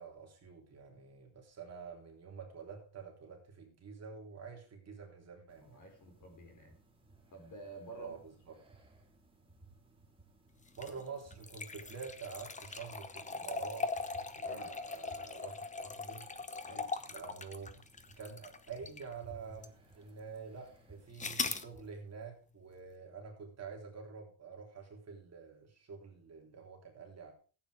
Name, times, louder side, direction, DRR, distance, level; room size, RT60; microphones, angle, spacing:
voice 1, 0.0-5.8 8.0-8.6 10.7-13.9 14.4-16.3 17.1-17.8 18.2-27.3, right 5 dB, 30° right, 1 dB, 3.4 m, -48 dB
sound 1, 5.5-21.9, right 3 dB, 10° right, 2.9 m, -61 dB
voice 2, 5.7-6.8 7.3-8.1 14.4-14.7 16.7-16.9, right 2 dB, 35° left, 4 dB, 4.7 m, -50 dB
sound 2, 10.7-19.1 19.6-19.7 21.2-21.7, left 4 dB, 15° left, 0.8 m, -40 dB
14.5 x 8.9 x 4.9 m, 0.37 s
cardioid pair, 145°, 50 cm